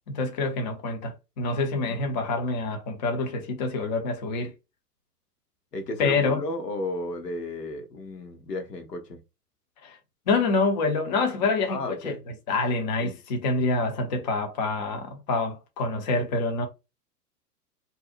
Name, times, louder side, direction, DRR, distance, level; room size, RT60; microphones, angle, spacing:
voice 1, 0.1-4.5 6.0-6.4 9.8-10.0 10.3-12.1 12.5-16.7, left 3 dB, 30° left, 0.5 m, -26 dB
voice 2, 1.7-2.2 5.7-9.2 11.7-12.2 13.0-13.2, left 2 dB, 85° left, 0.8 m, -34 dB
2.6 x 2.0 x 2.4 m
figure-of-eight pair, 110°, 47 cm